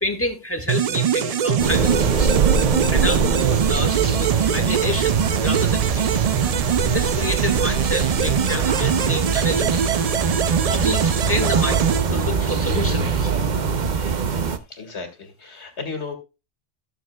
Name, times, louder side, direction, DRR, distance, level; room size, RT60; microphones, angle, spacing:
voice 1, 0.0-2.4 2.9-6.2 6.9-10.1 10.6-13.3, left 1 dB, 10° left, 5 dB, 1.5 m, -29 dB
sound 1, 0.7-12.8, right 8 dB, 65° right, 0.3 m, -23 dB
sound 2, 1.6-14.6, right 5 dB, 45° right, 0.8 m, -23 dB
voice 2, 13.9-16.1, left 4 dB, 65° left, 6 dB, 2.2 m, -36 dB
15.5 x 6.7 x 2.2 m, 0.28 s
omnidirectional pair, 1.2 m